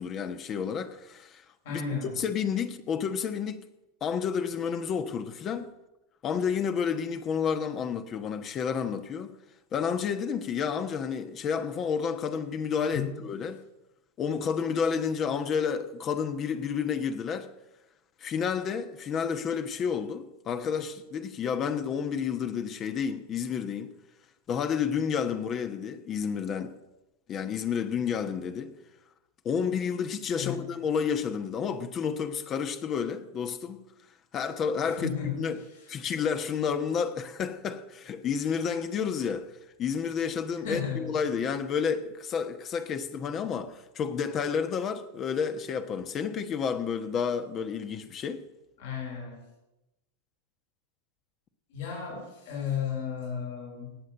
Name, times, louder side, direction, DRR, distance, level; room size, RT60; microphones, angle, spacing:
voice 1, 0.0-1.8 2.2-3.6 4.0-5.7 6.2-9.3 9.7-13.6 14.2-17.5 18.2-23.9 24.5-26.7 27.3-28.8 29.4-33.8 34.3-35.6 35.9-39.5 39.8-48.4, left 7 dB, 35° left, 1.1 m, -30 dB
voice 2, 1.6-2.1 12.9-13.2 30.4-30.6 35.0-35.4 40.6-41.1 48.8-49.4 51.7-54.0, left 7 dB, 70° left, 6.1 m, -33 dB
18.5 x 6.7 x 8.0 m
hypercardioid pair, 110°, 0 cm